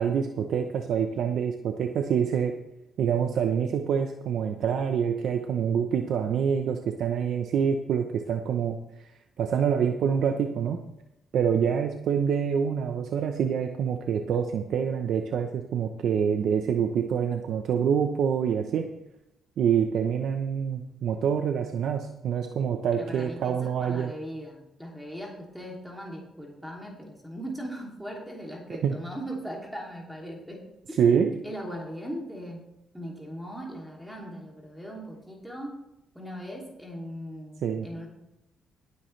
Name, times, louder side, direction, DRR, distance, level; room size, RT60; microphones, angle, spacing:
voice 1, 0.0-2.5 3.0-9.1 9.4-10.8 11.3-18.9 19.6-24.1 28.8-28.9 31.0-31.3 37.6-37.9, right 7 dB, 70° right, 6 dB, 0.8 m, -26 dB
voice 2, 22.9-31.0 31.4-32.7 32.9-35.8 36.1-38.1, equal, ahead, -1 dB, 2.7 m, -39 dB
17.0 x 9.9 x 3.3 m, 0.86 s
cardioid pair, 90°, 0 cm